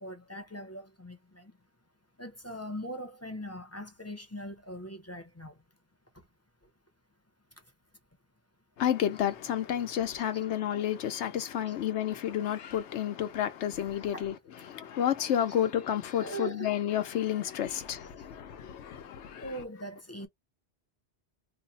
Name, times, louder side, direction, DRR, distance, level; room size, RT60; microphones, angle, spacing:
voice 1, 0.0-1.5 2.2-5.5 11.4-11.5 14.1-14.3 16.1-16.7 19.4-20.3, equal, 20° left, 0.5 m, -41 dB
voice 2, 8.8-14.3 14.7-19.5, left 10 dB, 90° left, 1.0 m, -30 dB
3.0 x 2.0 x 3.8 m
omnidirectional pair, 1.2 m